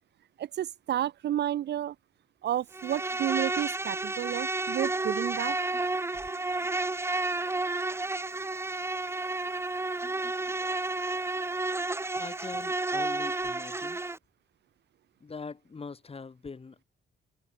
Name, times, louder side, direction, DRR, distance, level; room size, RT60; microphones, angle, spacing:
voice 1, 0.4-2.0 2.4-5.6, right 11 dB, 60° right, 0.6 m, -31 dB
Insect, 2.7-14.2, right 2 dB, 15° right, 0.8 m, -31 dB
voice 2, 12.2-14.0 15.2-16.8, left 4 dB, 30° left, 2.6 m, -42 dB
cardioid pair, 90°, 20 cm